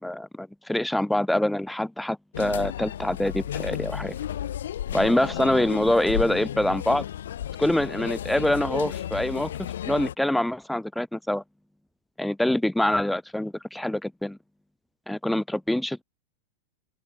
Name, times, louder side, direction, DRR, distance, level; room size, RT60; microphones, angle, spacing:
voice 1, 0.0-4.2 4.9-7.0 7.6-9.5 9.8-11.4 12.2-14.4 15.1-16.0, left 1 dB, 5° left, 1.7 m, -25 dB
sound 1, 2.3-10.1, left 11 dB, 60° left, 3.9 m, -33 dB
figure-of-eight pair, 90°, 0 cm